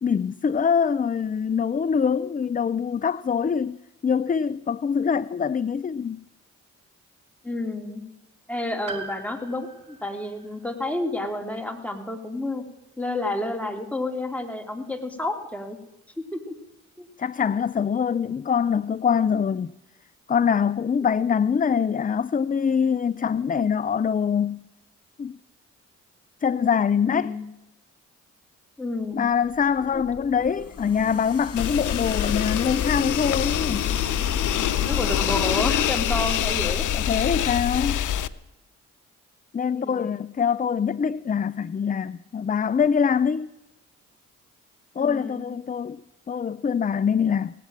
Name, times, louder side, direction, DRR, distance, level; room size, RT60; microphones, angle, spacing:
voice 1, 0.0-3.8 4.0-6.2 17.2-19.7 20.3-24.6 25.2-25.4 26.4-27.3 29.1-33.9 36.9-38.1 39.5-43.5 45.0-46.0 46.3-47.5, left 7 dB, 25° left, 0.5 m, -24 dB
voice 2, 7.4-8.0 8.5-12.6 13.0-15.8 16.3-16.5 17.0-17.1 27.1-27.4 28.8-29.2 29.9-30.0 34.9-36.9 39.7-40.2 45.0-45.5, left 2 dB, 5° left, 3.2 m, -30 dB
Piano, 8.9-13.0 14.3-14.4, right 3 dB, 70° right, 1.9 m, -43 dB
sound 1, 29.3-38.2, left 5 dB, 45° left, 3.0 m, -37 dB
sound 2, 31.6-38.3, left 11 dB, 65° left, 0.7 m, -25 dB
17.5 x 8.5 x 8.8 m
supercardioid pair, 45°, 33 cm